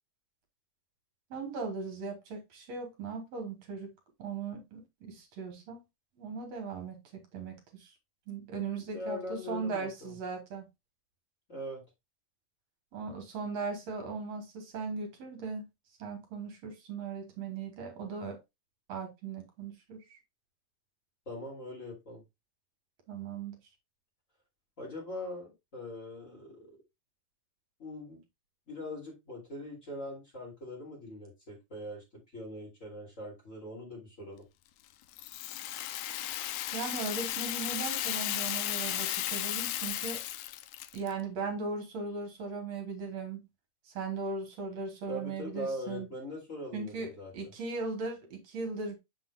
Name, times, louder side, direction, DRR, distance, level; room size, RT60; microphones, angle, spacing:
voice 1, 1.3-3.9 4.2-5.8 6.2-7.9 8.3-10.7 12.9-15.7 16.0-18.4 18.9-20.2 23.1-23.6 36.7-40.2 40.9-43.5 43.9-46.1 46.7-49.0, right 4 dB, 65° right, 2.3 m, -38 dB
voice 2, 8.9-10.1 11.5-11.8 21.3-22.2 24.8-26.8 27.8-28.2 28.7-34.5 45.1-47.3, left 1 dB, 25° left, 2.7 m, -41 dB
Rattle (instrument), 35.1-41.1, left 14 dB, 80° left, 1.8 m, -35 dB
7.9 x 5.8 x 2.3 m
omnidirectional pair, 3.4 m